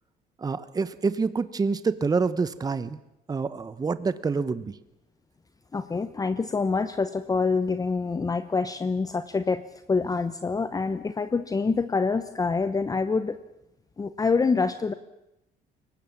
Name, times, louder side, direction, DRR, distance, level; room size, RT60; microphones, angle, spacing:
voice 1, 0.4-3.0 3.3-4.8, right 4 dB, 20° right, 14 dB, 1.0 m, -27 dB
voice 2, 5.7-9.6 9.9-13.4 14.0-14.9, left 4 dB, 20° left, 12 dB, 0.9 m, -26 dB
22.5 x 19.0 x 7.4 m, 0.88 s
cardioid pair, 110°, 17 cm